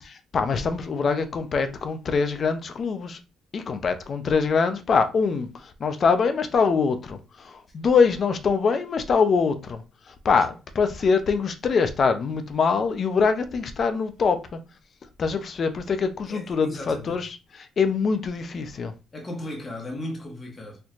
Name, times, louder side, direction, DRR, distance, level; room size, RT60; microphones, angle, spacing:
voice 1, 0.0-3.2 3.5-9.8 10.1-14.6 15.2-18.9, left 5 dB, 50° left, 0.6 m, -24 dB
voice 2, 16.3-17.2 19.1-20.8, left 1 dB, 35° left, 1.1 m, -36 dB
4.4 x 2.8 x 2.5 m
cardioid pair, 90°, 0 cm